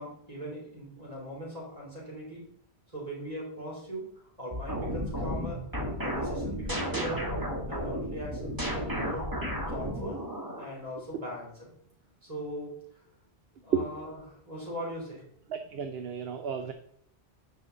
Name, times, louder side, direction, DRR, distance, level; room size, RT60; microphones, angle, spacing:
voice 1, 0.0-2.5 2.9-5.6 6.0-7.3 7.7-9.3 9.7-10.2 10.6-11.7 12.2-12.7 13.6-15.2, equal, 35° right, -4 dB, 3.8 m, -40 dB
sound 1, 4.5-10.7, equal, 20° right, 1.7 m, -33 dB
voice 2, 15.5-16.7, right 7 dB, 70° right, 7 dB, 0.9 m, -32 dB
9.6 x 5.7 x 3.9 m, 0.67 s
omnidirectional pair, 1.1 m